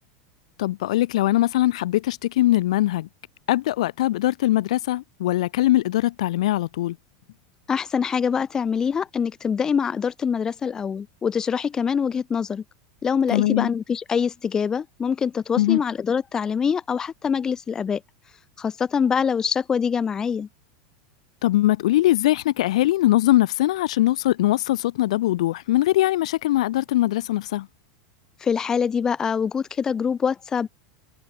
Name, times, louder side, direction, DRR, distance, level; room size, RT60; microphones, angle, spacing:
voice 1, 0.6-3.1 3.5-7.0 13.3-13.7 15.5-15.8 21.4-27.7, left 15 dB, 80° left, 0.7 m, -21 dB
voice 2, 7.7-12.6 13.0-18.0 18.6-20.5 28.4-30.7, left 6 dB, 20° left, 1.3 m, -24 dB
supercardioid pair, 145°, 3 cm